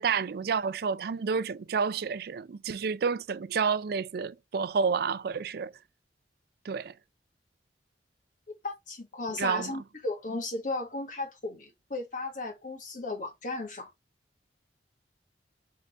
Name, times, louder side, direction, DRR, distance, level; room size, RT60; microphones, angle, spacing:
voice 1, 0.0-5.7 6.6-6.9 9.4-9.7, right 5 dB, 60° right, 0.4 m, -29 dB
voice 2, 8.6-13.9, left 2 dB, 50° left, 1.5 m, -35 dB
4.0 x 3.6 x 3.4 m
head